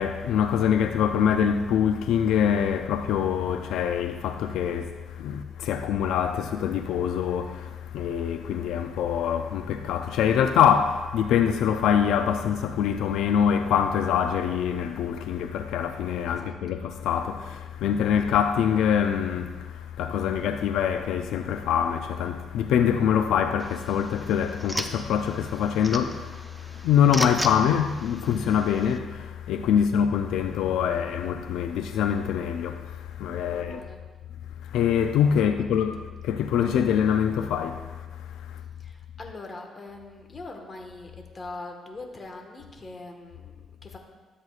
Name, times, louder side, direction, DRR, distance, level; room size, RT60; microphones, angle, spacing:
voice 1, 0.0-33.8 34.6-38.6, left 8 dB, 85° left, 0.4 m, -25 dB
sound 1, 23.6-29.0, equal, 5° right, 0.6 m, -37 dB
voice 2, 33.5-34.0 35.4-35.9 38.8-44.0, left 2 dB, 35° left, 1.4 m, -42 dB
13.0 x 7.9 x 2.4 m
cardioid pair, 90°, 0 cm